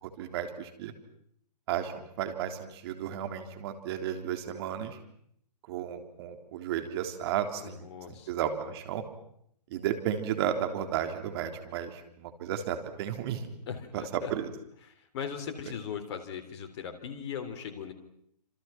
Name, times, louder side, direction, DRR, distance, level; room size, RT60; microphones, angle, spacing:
voice 1, 0.0-0.9 1.7-5.0 5.7-9.0 9.7-13.5 13.9-14.0 14.3-14.5, right 10 dB, 35° right, 6 dB, 3.5 m, -33 dB
voice 2, 7.6-8.3 13.7-14.3 14.8-17.9, left 7 dB, 40° left, 7 dB, 3.8 m, -39 dB
28.0 x 27.5 x 5.9 m, 0.70 s
hypercardioid pair, 135°, 21 cm